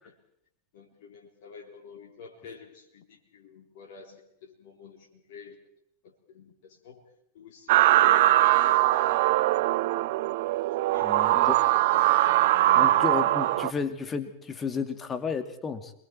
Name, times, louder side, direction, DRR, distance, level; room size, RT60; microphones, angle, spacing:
voice 1, 0.7-5.6 6.0-7.0 7.3-10.1 10.9-11.6 12.8-13.1, left 5 dB, 50° left, 0 dB, 3.6 m, -49 dB
sound 1, 7.7-13.7, right 15 dB, 50° right, 0.7 m, -22 dB
voice 2, 11.0-11.6 12.7-15.9, left 5 dB, 20° left, 9 dB, 2.4 m, -32 dB
27.5 x 22.0 x 4.5 m, 0.72 s
figure-of-eight pair, 90°, 0 cm